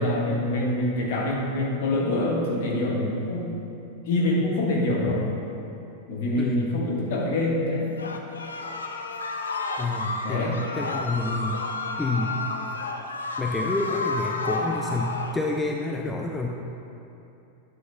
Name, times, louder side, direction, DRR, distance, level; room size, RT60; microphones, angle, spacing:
voice 1, 0.0-3.5 4.1-5.2 6.1-7.9 10.2-10.6, left 1 dB, 55° left, -2 dB, 1.2 m, -25 dB
voice 2, 6.4-6.8 9.8-11.6 12.0-12.3 13.4-16.5, left 2 dB, 10° left, 1 dB, 0.4 m, -28 dB
sound 1, 8.0-15.4, left 3 dB, 70° left, 0.5 m, -31 dB
9.2 x 7.7 x 2.2 m, 2.7 s
figure-of-eight pair, 90°, 0 cm